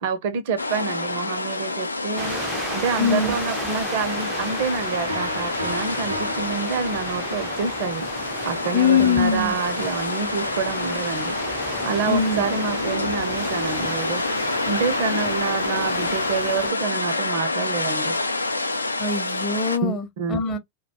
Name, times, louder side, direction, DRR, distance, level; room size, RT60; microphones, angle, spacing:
voice 1, 0.0-2.4 2.7-8.1 8.4-11.4 11.8-14.2 14.7-18.2 19.8-20.4, right 5 dB, 50° right, 0.6 m, -27 dB
sound 1, 0.6-19.8, left 2 dB, 80° left, 0.4 m, -27 dB
sound 2, 2.2-16.7, right 2 dB, 5° right, 0.4 m, -36 dB
voice 2, 3.0-3.3 8.7-9.5 12.1-12.4 19.0-20.6, left 6 dB, 30° left, 0.7 m, -22 dB
Piano, 5.1-7.5, equal, 85° right, 0.7 m, -35 dB
2.2 x 2.1 x 2.7 m
figure-of-eight pair, 90°, 0 cm